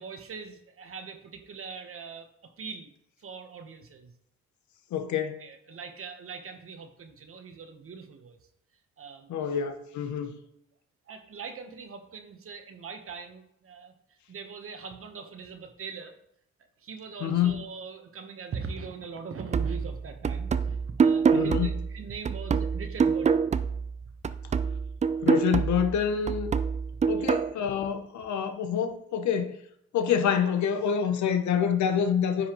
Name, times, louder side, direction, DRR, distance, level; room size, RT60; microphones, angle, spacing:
voice 1, 0.0-2.9 3.2-4.1 5.4-8.4 9.0-9.3 11.1-13.9 14.3-16.1 16.8-23.5 27.2-27.3, right 5 dB, 45° right, 6 dB, 1.1 m, -41 dB
voice 2, 4.9-5.4 9.3-10.4 17.2-17.7 21.3-21.7 25.2-26.5 27.1-29.6 29.9-32.5, left 8 dB, 70° left, 7 dB, 0.8 m, -27 dB
sound 1, 19.5-24.0 24.2-27.5, right 6 dB, 25° right, 0.3 m, -26 dB
9.8 x 5.5 x 3.0 m, 0.74 s
cardioid pair, 90°, 30 cm